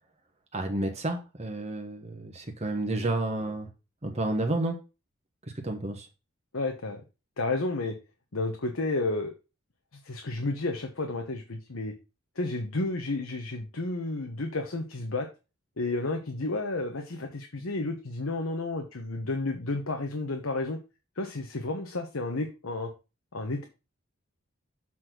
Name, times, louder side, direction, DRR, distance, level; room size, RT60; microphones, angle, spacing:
voice 1, 0.5-3.7 4.0-4.8 5.6-6.1, right 2 dB, 30° right, 3 dB, 1.1 m, -30 dB
voice 2, 6.5-7.0 7.4-7.9 8.3-9.3 10.0-11.9 12.4-15.3 15.8-20.8 21.2-22.9 23.3-23.6, left 2 dB, 90° left, 4 dB, 1.1 m, -31 dB
7.5 x 4.2 x 6.0 m, 0.30 s
head